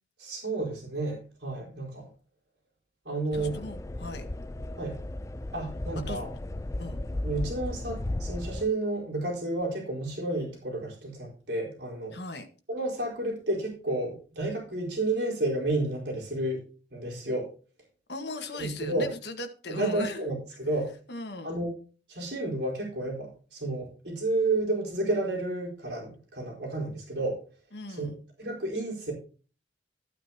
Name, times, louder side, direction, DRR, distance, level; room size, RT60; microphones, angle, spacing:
voice 1, 0.2-2.1 3.0-3.6 4.8-5.0 5.5-6.3 7.2-12.2 12.7-16.6 16.9-17.5 18.6-19.1 19.7-20.9 21.4-21.7 22.1-27.4 27.9-28.1 28.4-29.1, right 2 dB, 65° right, -2 dB, 4.4 m, -31 dB
voice 2, 3.3-4.3 6.1-6.2 6.8-7.0 12.1-12.5 18.1-20.2 21.1-21.6 27.7-28.2, left 2 dB, 65° left, 6 dB, 1.6 m, -38 dB
sound 1, 3.3-8.7, left 1 dB, 15° left, 0.4 m, -35 dB
14.0 x 9.2 x 2.9 m, 0.37 s
head